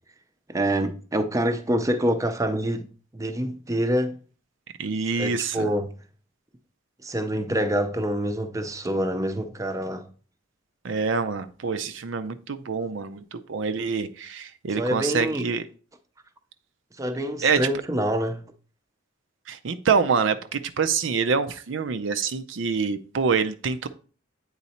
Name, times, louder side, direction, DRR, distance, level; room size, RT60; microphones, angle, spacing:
voice 1, 0.5-2.9 3.1-4.2 5.2-5.9 7.0-10.1 14.8-15.4 17.0-18.5, right 1 dB, 15° right, 0.6 m, -26 dB
voice 2, 4.8-5.7 10.8-15.6 17.4-17.6 19.5-23.9, right 5 dB, 70° right, 0.5 m, -26 dB
8.3 x 4.0 x 4.2 m
head